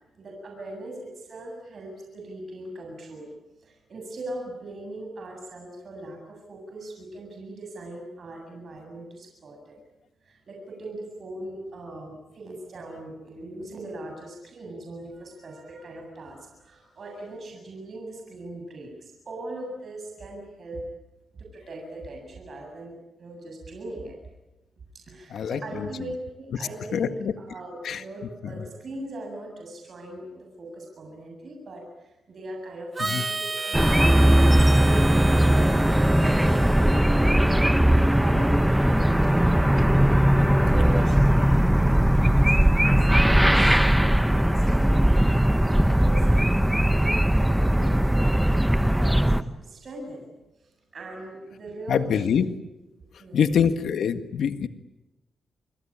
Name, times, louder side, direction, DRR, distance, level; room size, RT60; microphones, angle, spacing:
voice 1, 0.2-3.3 3.6-9.8 10.2-20.8 21.3-24.1 24.9-34.0 34.5-35.7 36.0-37.3 38.1-39.4 39.7-46.5 46.9-48.5 48.9-50.3 50.6-52.3 53.2-53.6, right 2 dB, 50° right, 2 dB, 7.7 m, -40 dB
voice 2, 25.3-26.1 26.9-27.3 27.8-28.0 28.4-28.5 33.0-33.2 51.9-52.4 53.3-54.7, left 7 dB, 75° left, 9 dB, 1.8 m, -25 dB
Harmonica, 32.9-37.7, right 3 dB, 25° right, 1.1 m, -32 dB
sound 1, 33.7-49.4, right 1 dB, 5° right, 1.2 m, -19 dB
28.5 x 22.5 x 8.9 m, 1.0 s
cardioid pair, 105°, 0 cm